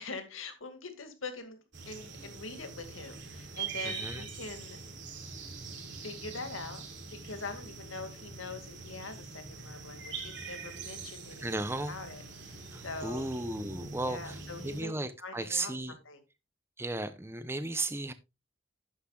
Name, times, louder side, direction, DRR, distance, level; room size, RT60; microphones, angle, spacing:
voice 1, 0.0-4.8 6.0-6.8 7.1-13.2 14.0-14.9 15.2-15.7 16.1-16.2, left 3 dB, 80° left, 2.1 m, -43 dB
sound 1, 1.7-14.8, right 5 dB, 60° right, 3.0 m, -43 dB
voice 2, 3.8-4.3 11.4-12.0 12.7-16.0 16.8-18.1, right 2 dB, 10° right, 0.6 m, -35 dB
11.5 x 9.8 x 2.4 m
head